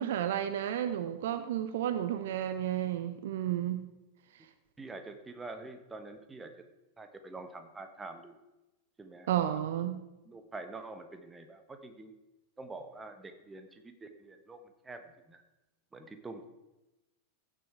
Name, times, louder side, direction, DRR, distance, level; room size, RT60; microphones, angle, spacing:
voice 1, 0.0-3.8 9.3-10.0, right 11 dB, 55° right, 11 dB, 0.6 m, -32 dB
voice 2, 4.8-6.5 7.0-8.4 9.0-9.6 10.3-12.1 12.6-15.0 15.3-15.4 15.9-16.5, right 3 dB, 15° right, 8 dB, 1.2 m, -46 dB
15.5 x 6.8 x 4.6 m, 1.0 s
figure-of-eight pair, 90°, 0 cm